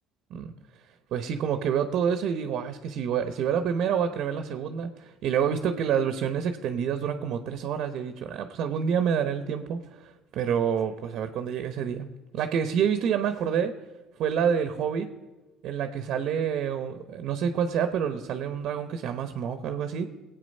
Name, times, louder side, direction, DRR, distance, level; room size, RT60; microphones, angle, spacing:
voice 1, 1.1-13.7 14.2-15.1 15.6-20.1, right 7 dB, 60° right, 9 dB, 0.9 m, -28 dB
19.5 x 8.5 x 5.4 m, 1.1 s
supercardioid pair, 105°, 0 cm